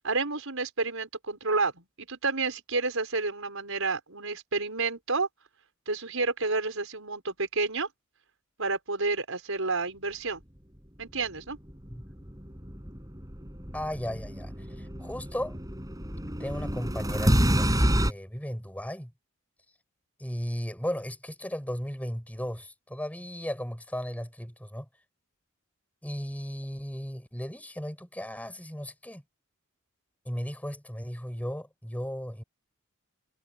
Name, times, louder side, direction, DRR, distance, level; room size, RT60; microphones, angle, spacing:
voice 1, 0.0-5.3 5.9-7.9 8.6-10.4 11.0-11.6, right 3 dB, 75° right, 5.9 m, -30 dB
sound 1, 11.7-18.1, equal, 20° right, 6.9 m, -28 dB
voice 2, 13.7-15.6 16.4-19.1 20.2-24.9 26.0-29.2 30.3-32.4, equal, 5° left, 7.0 m, -36 dB
head